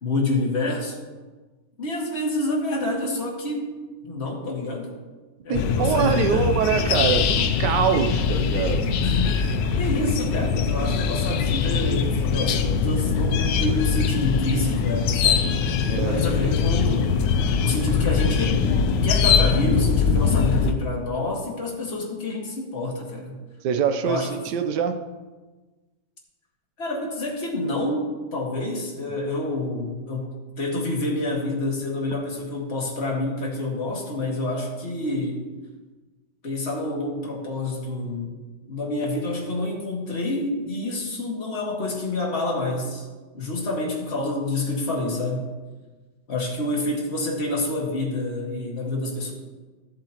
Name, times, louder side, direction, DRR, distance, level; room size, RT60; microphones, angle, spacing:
voice 1, 0.0-1.0 1.8-3.7 4.0-4.9 5.4-6.5 9.0-15.5 15.8-18.6 19.0-23.4 24.1-24.3 26.8-35.4 36.4-38.3 38.7-43.1 43.3-45.5 46.3-49.3, left 2 dB, 40° left, -2 dB, 2.0 m, -28 dB
sound 1, 5.5-20.7, left 6 dB, 90° left, 1.3 m, -22 dB
voice 2, 5.5-9.0 15.9-16.2 23.6-25.0, right 7 dB, 80° right, 7 dB, 1.3 m, -24 dB
14.0 x 7.6 x 2.9 m, 1.3 s
omnidirectional pair, 1.9 m